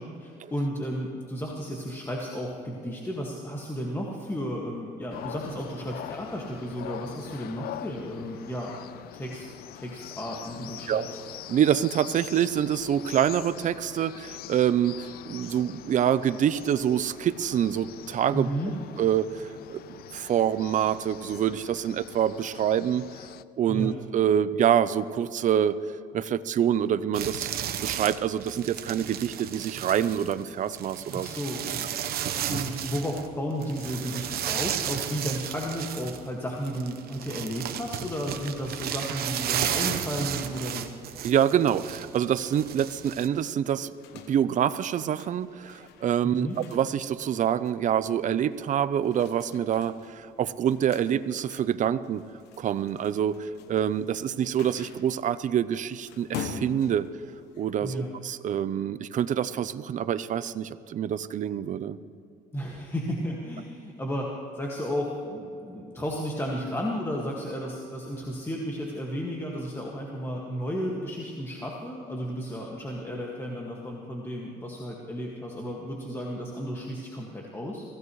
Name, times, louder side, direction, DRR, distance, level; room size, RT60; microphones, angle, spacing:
voice 1, 0.0-8.7 9.1-9.5 9.7-11.2 18.3-18.7 23.7-23.9 31.1-31.9 32.2-40.9 46.2-46.6 57.8-58.1 62.5-77.8, equal, 15° left, -2 dB, 1.9 m, -33 dB
sound 1, 5.1-23.4, left 13 dB, 65° left, 0.5 m, -43 dB
voice 2, 11.5-18.5 19.0-19.8 20.1-23.1 23.6-25.8 26.1-27.5 27.8-31.3 32.4-32.6 41.2-43.9 44.3-52.2 52.6-57.1 57.6-57.9 58.2-62.0, right 9 dB, 50° right, 14 dB, 0.6 m, -26 dB
sound 2, 27.1-33.3 33.6-43.3, right 10 dB, 65° right, 1.0 m, -33 dB
sound 3, 41.7-57.9, left 6 dB, 90° left, 1.2 m, -46 dB
23.5 x 16.0 x 3.2 m, 2.7 s
cardioid pair, 110°, 17 cm